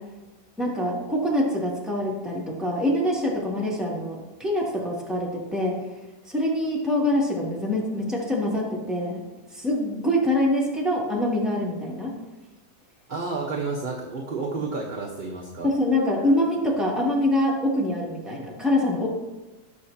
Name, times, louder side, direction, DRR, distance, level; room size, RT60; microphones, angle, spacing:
voice 1, 0.6-5.7 6.3-9.2 9.5-12.1 15.6-19.1, left 1 dB, ahead, -5 dB, 2.4 m, -25 dB
voice 2, 13.1-15.7, right 3 dB, 30° right, -2 dB, 1.1 m, -30 dB
18.5 x 6.4 x 2.9 m, 1.1 s
omnidirectional pair, 1.9 m